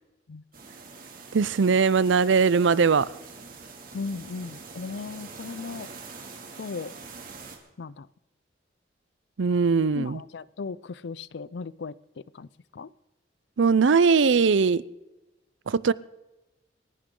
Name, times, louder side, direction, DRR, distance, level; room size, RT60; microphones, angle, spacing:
sound 1, 0.5-7.6, right 4 dB, 50° right, 2.5 m, -44 dB
voice 1, 1.3-3.1 9.4-10.2 13.6-14.8 15.7-15.9, right 5 dB, 90° right, 0.5 m, -20 dB
voice 2, 3.9-5.9 6.6-6.9 7.8-8.1 9.9-12.5 12.7-12.9, left 4 dB, 70° left, 0.5 m, -37 dB
28.0 x 11.0 x 3.8 m
head